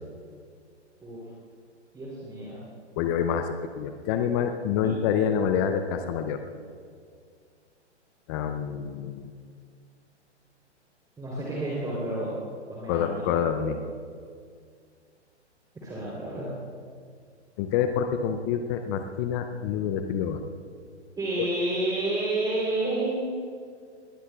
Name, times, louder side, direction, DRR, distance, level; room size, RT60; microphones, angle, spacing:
voice 1, 1.9-2.6 4.8-4.9 11.2-12.4 12.7-13.4 15.8-16.5 21.2-23.4, right 2 dB, 10° right, -6 dB, 3.4 m, -30 dB
voice 2, 3.0-6.4 8.3-9.3 12.9-13.8 17.6-20.4, left 8 dB, 20° left, 7 dB, 0.5 m, -27 dB
20.5 x 19.0 x 2.3 m, 2.1 s
figure-of-eight pair, 120°, 35 cm